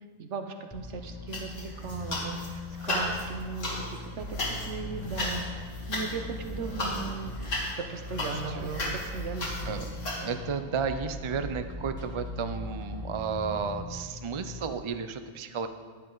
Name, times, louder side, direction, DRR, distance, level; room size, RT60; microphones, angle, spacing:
voice 1, 0.2-5.4 5.9-9.9, right 4 dB, 70° right, 6 dB, 1.2 m, -38 dB
sound 1, 0.7-14.7, left 2 dB, 15° left, 1.0 m, -41 dB
sound 2, 1.3-2.5 2.8-10.2, left 1 dB, 90° left, 2.2 m, -35 dB
sound 3, 4.2-13.1, equal, 15° right, 1.2 m, -43 dB
voice 2, 10.2-15.7, right 6 dB, 45° right, 9 dB, 0.3 m, -33 dB
11.0 x 10.5 x 3.9 m, 1.5 s
omnidirectional pair, 1.3 m